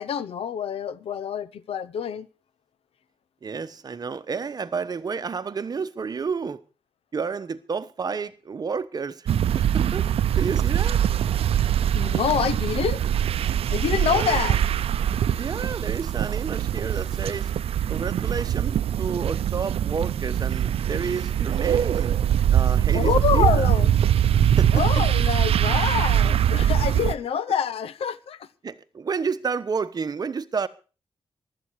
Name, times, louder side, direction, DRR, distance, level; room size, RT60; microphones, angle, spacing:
voice 1, 0.0-2.3 11.9-13.1 13.7-14.6 22.9-23.9 24.7-28.5, left 7 dB, 85° left, 0.9 m, -26 dB
voice 2, 3.4-6.6 7.1-10.1 10.3-11.0 14.1-14.4 15.3-17.5 17.9-22.1 22.5-23.7 24.4-24.8 28.6-30.7, right 5 dB, 45° right, 1.1 m, -30 dB
sound 1, 9.3-27.1, right 10 dB, 85° right, 0.6 m, -22 dB
15.5 x 12.5 x 4.8 m
wide cardioid pair, 110°, 10 cm